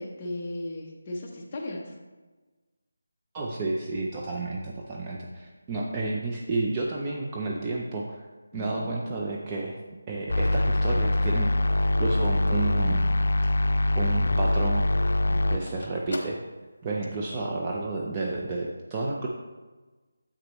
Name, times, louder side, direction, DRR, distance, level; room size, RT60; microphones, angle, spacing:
voice 1, 0.0-1.9 8.5-8.9 15.3-15.7 17.3-17.6, left 1 dB, 20° left, -2 dB, 0.8 m, -37 dB
voice 2, 3.3-8.2 8.5-9.8 10.1-11.5 12.0-13.1 14.0-14.8 15.5-16.4 16.8-19.3, right 3 dB, 15° right, -2 dB, 0.4 m, -31 dB
Telephone, 10.2-13.6 14.0-14.1 14.3-17.2, left 2 dB, 60° left, 1.1 m, -45 dB
sound 1, 10.3-15.6, left 2 dB, 85° left, 0.4 m, -23 dB
7.8 x 6.2 x 3.0 m, 1.3 s
figure-of-eight pair, 175°, 0 cm